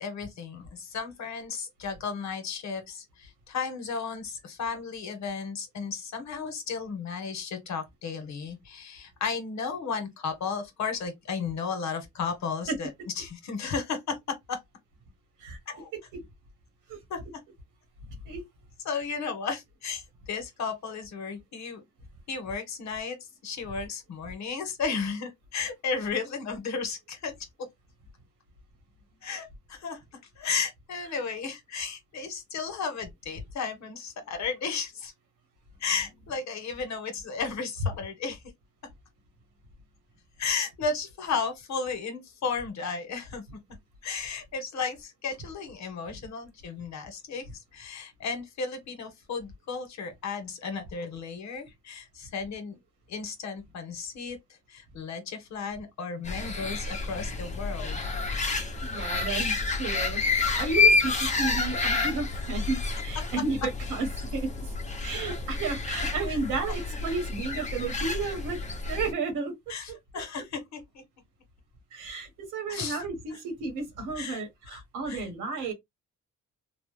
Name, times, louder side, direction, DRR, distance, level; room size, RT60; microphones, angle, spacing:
voice 1, 0.0-12.9 13.1-14.6 15.7-15.9 17.1-17.2 18.8-21.8 22.3-23.2 23.4-27.7 29.2-30.0 30.4-35.1 35.8-38.4 40.4-43.4 44.0-47.4 47.7-52.8 53.1-54.4 54.7-58.2 66.3-66.4 69.7-71.0 72.7-73.1 74.1-74.4 74.7-74.8 75.1-75.3 75.6-75.7, left 5 dB, 65° left, 1.1 m, -34 dB
sound 1, 56.2-69.1, left 3 dB, 25° left, 0.7 m, -29 dB
voice 2, 58.3-63.6 63.9-64.1 64.3-64.7 65.0-69.6 71.9-75.7, right 4 dB, 90° right, 1.3 m, -33 dB
3.0 x 2.0 x 3.1 m
cardioid pair, 90°, 30 cm